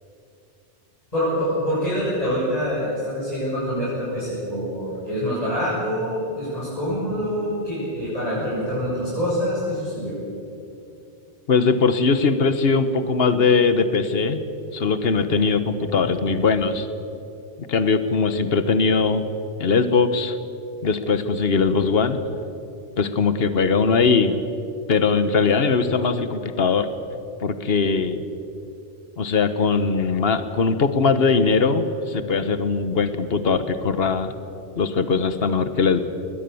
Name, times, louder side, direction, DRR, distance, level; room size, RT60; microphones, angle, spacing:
voice 1, 1.1-10.2, equal, 35° left, -10 dB, 7.5 m, -25 dB
voice 2, 11.5-14.4 14.7-16.9 17.7-19.2 19.6-20.4 20.8-22.2 23.0-24.4 24.9-26.9 27.4-28.2 29.2-34.3 34.8-36.0, left 4 dB, 60° left, 11 dB, 1.4 m, -20 dB
20.5 x 20.5 x 7.0 m, 2.7 s
omnidirectional pair, 1.2 m